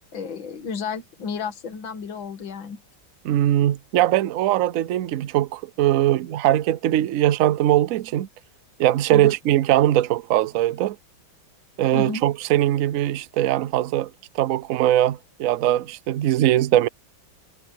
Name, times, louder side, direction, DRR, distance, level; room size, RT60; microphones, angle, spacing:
voice 1, 0.1-2.8 9.1-9.3 11.9-12.2, left 5 dB, 75° left, 2.7 m, -32 dB
voice 2, 3.2-8.3 8.8-11.0 11.8-16.9, right 13 dB, 85° right, 0.7 m, -21 dB
omnidirectional pair, 2.2 m